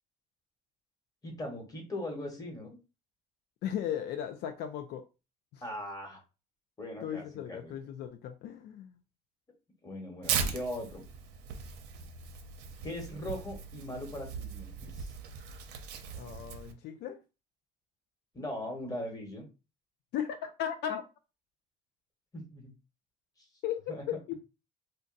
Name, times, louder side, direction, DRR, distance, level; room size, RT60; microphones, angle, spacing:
voice 1, 1.2-2.7 5.6-6.2 6.8-7.7 9.8-11.0 12.8-15.1 18.3-19.5 22.3-22.7 23.4-23.5 23.9-24.1, left 1 dB, 20° left, 1.2 m, -40 dB
voice 2, 3.6-5.0 5.5-5.6 7.0-9.0 16.1-17.2 20.1-21.0 23.6-24.3, left 9 dB, 75° left, 0.4 m, -36 dB
Tearing, 10.2-16.7, right 6 dB, 85° right, 0.6 m, -38 dB
2.6 x 2.2 x 3.8 m
cardioid pair, 110°, 17 cm